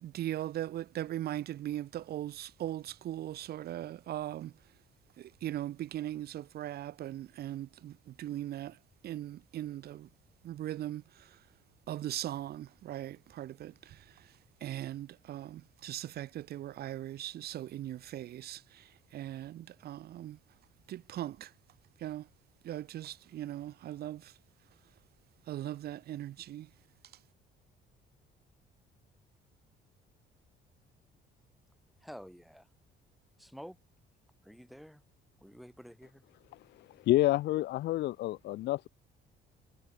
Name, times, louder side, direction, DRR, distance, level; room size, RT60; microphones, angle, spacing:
voice 1, 0.0-4.5 5.4-7.9 8.2-8.7 9.0-10.1 10.4-11.0 11.9-13.7 14.6-18.6 19.1-20.4 20.9-21.5 22.0-22.2 22.6-24.2 25.5-26.7, right 13 dB, 55° right, 0.7 m, -39 dB
voice 2, 32.0-32.7 33.4-33.8 34.4-35.0 35.4-36.2, equal, ahead, 1.7 m, -49 dB
voice 3, 37.1-38.9, left 16 dB, 60° left, 0.4 m, -28 dB
cardioid pair, 130°, 19 cm